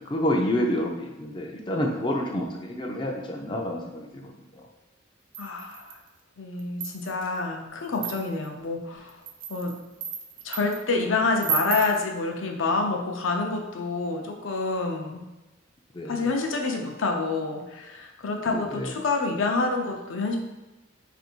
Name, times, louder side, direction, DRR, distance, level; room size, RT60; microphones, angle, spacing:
voice 1, 0.0-4.7 15.9-16.3 18.5-18.9, left 1 dB, 25° left, 1 dB, 0.3 m, -29 dB
sound 1, 5.3-6.1 6.6-7.3 7.9-8.5 9.1-10.8 11.4-12.0, right 6 dB, 45° right, 0.4 m, -33 dB
voice 2, 5.4-6.0 6.4-9.2 9.5-9.8 10.4-15.2 16.0-20.4, left 3 dB, 75° left, 2 dB, 0.6 m, -27 dB
3.4 x 2.6 x 4.4 m, 1.1 s
head